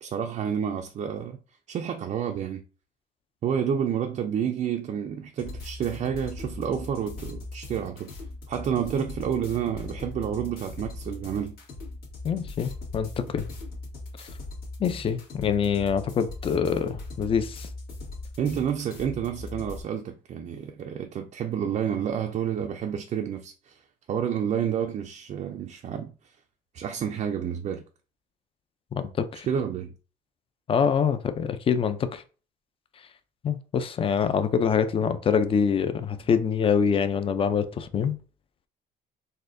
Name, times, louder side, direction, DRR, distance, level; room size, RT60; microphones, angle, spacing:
voice 1, 0.0-1.4 1.7-2.6 3.4-8.1 8.5-11.6 18.4-23.8 24.1-26.4 26.7-27.8 29.5-29.9, right 8 dB, 40° right, 0.4 m, -29 dB
sound 1, 5.4-19.8, left 2 dB, 65° left, 1.8 m, -40 dB
voice 2, 12.2-13.5 14.8-17.7 28.9-29.5 30.7-32.2 33.4-38.1, left 7 dB, 35° left, 0.4 m, -25 dB
4.1 x 2.6 x 2.6 m
cardioid pair, 110°, 17 cm